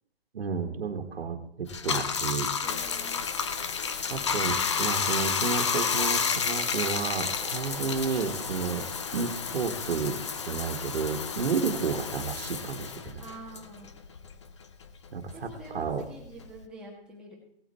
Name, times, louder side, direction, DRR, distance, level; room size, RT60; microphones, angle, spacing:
voice 1, 0.3-2.5 4.1-8.8 9.1-10.2 10.5-13.2 15.1-16.0, right 5 dB, 65° right, 3 dB, 1.6 m, -31 dB
Bathtub (filling or washing), 1.7-14.5 14.8-16.6, left 6 dB, 30° left, 0.6 m, -31 dB
voice 2, 2.6-3.3 13.2-13.9 15.3-17.3, right 2 dB, 5° right, -3 dB, 1.4 m, -46 dB
Breathing, 6.0-9.9, right 7 dB, 25° right, 1.1 m, -48 dB
17.0 x 8.8 x 4.3 m, 0.74 s
hypercardioid pair, 165°, 31 cm